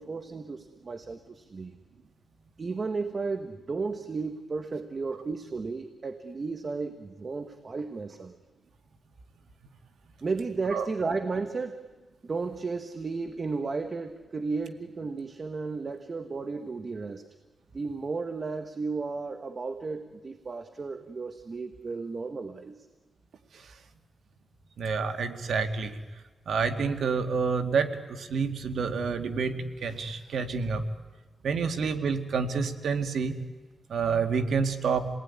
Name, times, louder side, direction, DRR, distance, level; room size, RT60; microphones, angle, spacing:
voice 1, 0.0-1.8 2.6-8.4 10.2-11.9 12.2-17.3 17.7-22.9, right 4 dB, 40° right, 8 dB, 1.4 m, -34 dB
voice 2, 24.8-26.0 26.5-30.9 31.4-33.4 33.9-35.1, right 5 dB, 80° right, 7 dB, 2.0 m, -28 dB
29.0 x 19.0 x 9.8 m, 1.2 s
wide cardioid pair, 115°, 0 cm